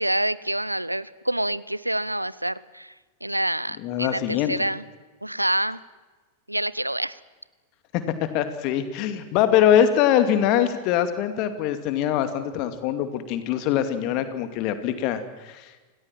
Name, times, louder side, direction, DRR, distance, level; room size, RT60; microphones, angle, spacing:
voice 1, 0.0-2.9 3.2-4.8 5.2-5.8 6.5-7.2, right 1 dB, 85° right, 19 dB, 0.7 m, -27 dB
voice 2, 3.8-4.5 8.3-15.9, left 10 dB, 40° left, 10 dB, 2.5 m, -23 dB
26.5 x 18.0 x 7.6 m, 1.3 s
figure-of-eight pair, 90°, 0 cm